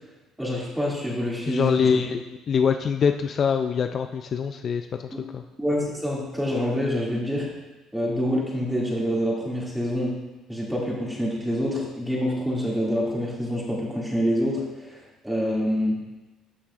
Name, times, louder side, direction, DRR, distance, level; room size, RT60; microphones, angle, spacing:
voice 1, 0.4-2.0 5.6-7.5 7.9-10.2 10.5-16.0, equal, 5° right, -4 dB, 2.4 m, -26 dB
voice 2, 1.5-4.9 5.3-5.4, left 6 dB, 50° left, 7 dB, 0.4 m, -24 dB
12.5 x 5.6 x 2.5 m, 1.1 s
cardioid pair, 90°, 0 cm